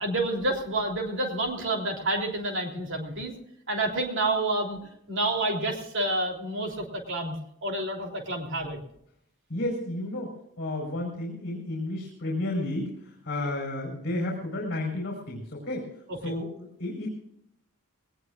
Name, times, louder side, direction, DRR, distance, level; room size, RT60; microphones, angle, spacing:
voice 1, 0.0-3.3 3.7-4.8 5.1-8.8 13.4-13.6 16.1-16.3, right 2 dB, 55° right, 1 dB, 3.3 m, -29 dB
voice 2, 9.5-15.9 16.2-17.1, left 1 dB, 45° left, -1 dB, 4.6 m, -32 dB
21.0 x 19.0 x 2.5 m, 0.75 s
head